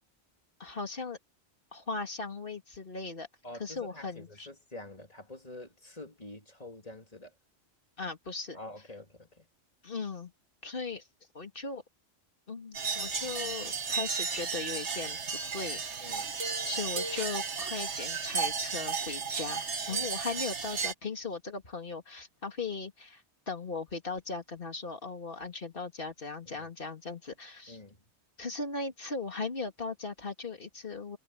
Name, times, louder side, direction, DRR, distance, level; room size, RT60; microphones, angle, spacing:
voice 1, 0.6-1.2 1.7-3.3 3.6-4.5 8.0-8.6 9.8-10.3 10.6-11.0 11.3-11.8 12.5-16.2 16.6-27.8 28.4-31.2, left 4 dB, 50° left, 2.8 m, -38 dB
voice 2, 3.4-7.3 8.5-9.5 16.0-16.4 19.9-20.2 26.5-26.7 27.7-28.0, left 2 dB, 35° left, 3.2 m, -47 dB
sound 1, 12.7-20.9, right 5 dB, 80° right, 1.8 m, -34 dB
omnidirectional pair, 1.2 m